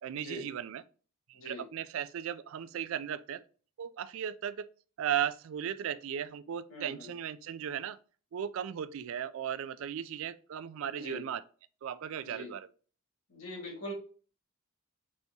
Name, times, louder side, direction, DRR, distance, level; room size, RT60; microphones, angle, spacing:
voice 1, 0.0-0.8 1.3-3.4 3.8-4.6 5.0-8.0 8.3-11.4 11.8-12.7, right 9 dB, 60° right, 0.3 m, -36 dB
voice 2, 6.7-7.1 10.9-11.2 12.2-12.5 13.3-13.9, equal, 65° left, 1.9 m, -42 dB
4.3 x 3.4 x 2.7 m
head